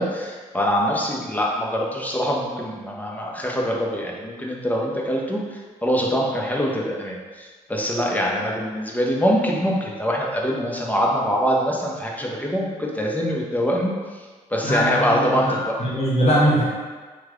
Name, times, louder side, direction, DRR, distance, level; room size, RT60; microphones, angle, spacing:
voice 1, 0.0-15.7, equal, 10° left, -2 dB, 0.8 m, -24 dB
voice 2, 14.6-16.6, equal, 40° left, -6 dB, 1.4 m, -21 dB
3.1 x 2.3 x 3.6 m, 1.4 s
hypercardioid pair, 50°, 16 cm